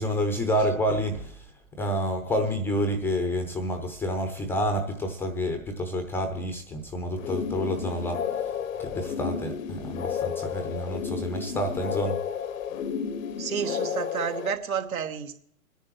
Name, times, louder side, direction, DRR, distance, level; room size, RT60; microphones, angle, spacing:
voice 1, 0.0-1.4 1.8-8.5 8.8-12.2, equal, 5° left, 6 dB, 0.6 m, -29 dB
sound 1, 7.2-14.5, left 7 dB, 65° left, 0.8 m, -32 dB
voice 2, 13.4-15.3, right 7 dB, 70° right, 7 dB, 1.4 m, -30 dB
25.5 x 10.0 x 3.0 m, 0.65 s
hypercardioid pair, 120°, 43 cm